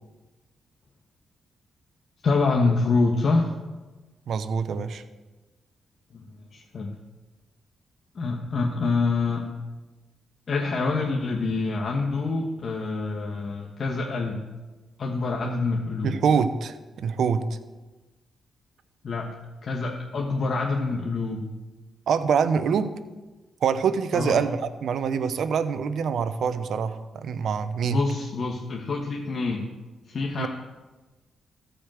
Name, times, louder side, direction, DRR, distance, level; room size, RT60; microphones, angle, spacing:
voice 1, 2.2-3.5 6.1-6.2 6.5-6.9 8.1-9.5 10.5-14.4 15.0-16.2 19.0-19.3 19.6-21.5 24.1-24.4 27.8-29.7 30.1-30.5, left 3 dB, 55° left, 0 dB, 1.2 m, -26 dB
voice 2, 4.3-5.0 16.0-17.4 22.1-22.9 23.6-28.0 30.4-30.5, right 6 dB, 70° right, 11 dB, 0.7 m, -25 dB
14.0 x 5.1 x 7.7 m, 1.2 s
cardioid pair, 75°, 0 cm